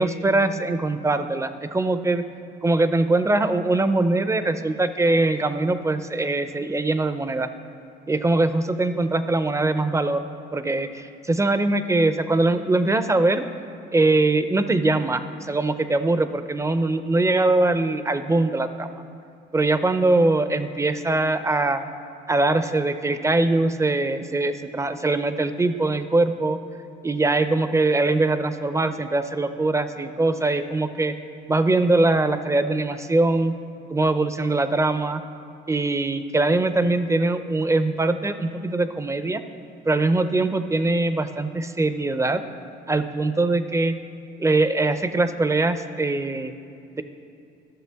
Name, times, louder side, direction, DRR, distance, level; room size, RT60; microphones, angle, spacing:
voice 1, 0.0-2.2 2.6-7.5 8.1-10.2 10.5-13.4 13.9-18.9 19.5-21.8 22.3-26.6 27.0-31.1 31.5-33.5 33.9-35.2 35.7-39.4 39.9-42.4 42.9-43.9 44.4-46.5, right 2 dB, 15° right, 11 dB, 0.5 m, -22 dB
13.5 x 6.5 x 3.5 m, 2.7 s
cardioid pair, 90°, 20 cm